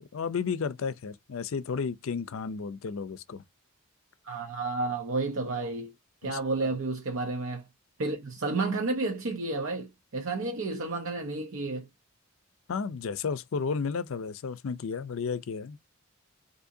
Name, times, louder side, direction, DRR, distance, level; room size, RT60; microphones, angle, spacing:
voice 1, 0.0-3.4 6.2-6.7 12.7-15.8, left 5 dB, 65° left, 0.4 m, -33 dB
voice 2, 4.2-5.9 6.2-7.6 8.0-11.9, right 3 dB, 60° right, 0.6 m, -31 dB
3.6 x 2.7 x 2.6 m
head